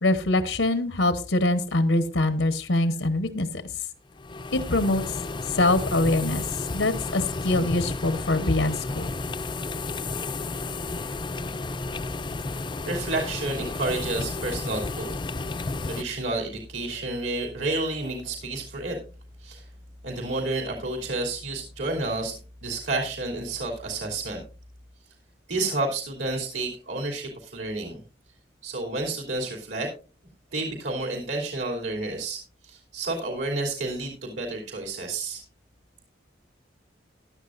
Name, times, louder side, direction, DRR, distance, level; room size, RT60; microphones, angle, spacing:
voice 1, 0.0-3.6 4.5-5.2 5.5-6.4 6.7-9.1, left 2 dB, 85° left, 10 dB, 1.1 m, -24 dB
sound 1, 4.1-16.0, left 3 dB, 25° left, 0.4 m, -32 dB
voice 2, 12.9-15.2 15.5-19.0 19.4-19.6 20.0-24.4 25.5-28.0 28.6-29.9 30.5-35.4, right 2 dB, 75° right, 1 dB, 3.1 m, -30 dB
15.5 x 11.0 x 2.6 m, 0.34 s
head